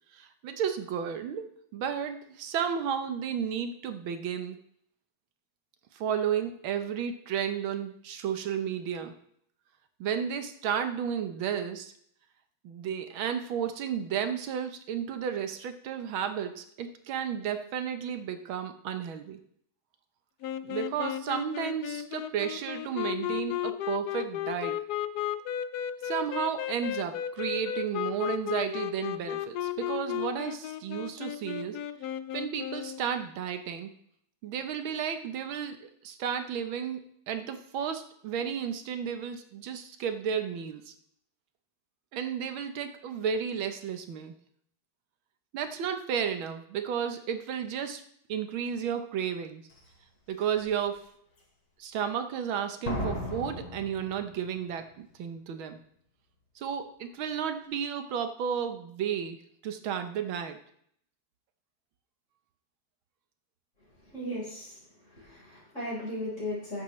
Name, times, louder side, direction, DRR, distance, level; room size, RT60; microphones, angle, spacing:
voice 1, 0.1-1.4 1.7-4.6 5.9-9.1 10.0-11.9 12.6-19.4 20.6-24.8 26.0-31.8 32.3-33.9 34.4-37.0 37.3-40.9 42.1-44.3 45.5-48.0 48.3-49.7 50.3-51.0 51.8-55.8 56.6-59.4 59.6-60.6, right 8 dB, 75° right, 8 dB, 1.7 m, -33 dB
sound 1, 20.4-33.0, left 11 dB, 80° left, 0.8 m, -34 dB
Slam, 49.7-49.8 50.4-50.8 52.9-54.7 55.0-55.1, left 2 dB, 55° left, 3.1 m, -36 dB
voice 2, 64.0-64.8 65.0-66.8, left 1 dB, 35° left, -7 dB, 4.8 m, -36 dB
14.0 x 10.5 x 3.2 m, 0.67 s
omnidirectional pair, 2.3 m